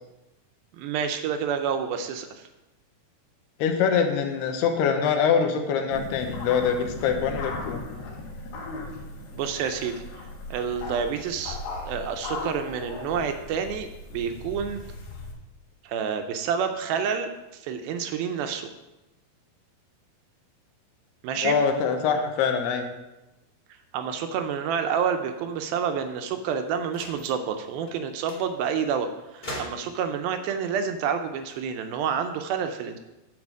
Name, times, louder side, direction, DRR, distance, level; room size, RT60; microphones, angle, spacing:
voice 1, 0.8-2.5 9.4-10.0 10.5-11.6 11.9-14.8 15.8-17.3 17.6-18.7 21.2-21.6 23.9-29.1 29.3-33.0, right 7 dB, 80° right, 7 dB, 2.3 m, -28 dB
voice 2, 3.6-7.8 21.4-22.9, left 6 dB, 90° left, 5 dB, 3.0 m, -24 dB
sound 1, 5.9-15.3, left 2 dB, 70° left, 3.2 m, -37 dB
sound 2, 26.9-27.3 27.9-28.0 28.3-28.5 29.4-30.1 31.3-32.4, equal, 35° left, 0.7 m, -40 dB
9.5 x 4.9 x 7.3 m, 0.99 s
omnidirectional pair, 4.6 m